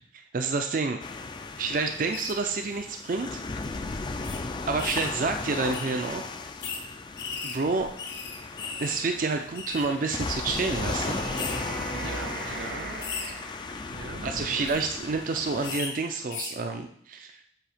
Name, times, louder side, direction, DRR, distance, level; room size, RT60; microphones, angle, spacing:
voice 1, 0.1-1.0 1.6-3.4 4.7-6.3 7.4-7.9 8.8-11.2 14.2-17.4, right 4 dB, 45° right, 5 dB, 0.4 m, -29 dB
sound 1, 1.0-15.8, left 3 dB, 25° left, 0.3 m, -36 dB
sound 2, 2.1-2.3 3.1-3.3 3.5-3.6 4.2-4.4 4.8-5.2 5.7-5.9 6.6-6.8 7.2-9.0 9.3-9.9 10.5-10.7 11.3-11.6 12.1-12.3 13.0-13.3 14.5-14.8 15.6-15.9 16.3-16.5, left 5 dB, 70° left, 0.9 m, -36 dB
sound 3, 10.6-14.0 16.6-16.7, right 2 dB, 70° right, 1.1 m, -38 dB
voice 2, 11.9-13.0 13.9-14.8, right 3 dB, 90° right, 6 dB, 0.7 m, -41 dB
7.7 x 2.8 x 5.0 m, 0.66 s
head